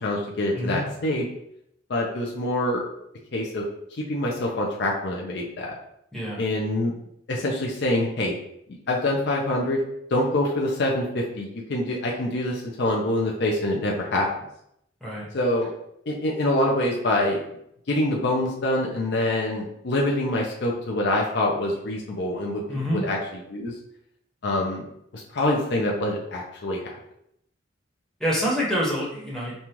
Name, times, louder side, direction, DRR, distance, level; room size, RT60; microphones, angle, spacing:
voice 1, 0.0-1.3 1.9-2.9 3.3-3.6 4.0-5.8 6.4-6.9 7.3-8.3 8.9-9.8 10.1-14.3 15.3-15.7 16.1-17.4 17.9-22.6 22.9-23.7 24.4-24.8 25.1-26.9, left 1 dB, 60° left, -2 dB, 0.5 m, -25 dB
voice 2, 22.7-23.0 28.2-29.5, equal, 5° left, -6 dB, 1.2 m, -26 dB
5.3 x 2.3 x 3.0 m, 0.76 s
head